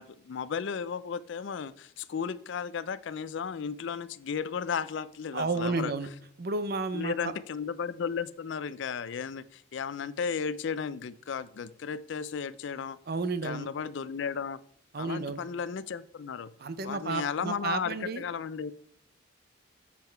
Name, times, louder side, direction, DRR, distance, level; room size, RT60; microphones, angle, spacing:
voice 1, 0.0-5.9 6.9-13.0 13.4-14.6 15.0-16.5 16.8-18.7, left 6 dB, 55° left, 17 dB, 0.4 m, -34 dB
voice 2, 5.3-6.1 6.4-7.3 13.1-13.7 14.9-15.4 16.6-18.2, right 3 dB, 45° right, 12 dB, 0.5 m, -32 dB
7.5 x 5.5 x 4.4 m, 0.62 s
head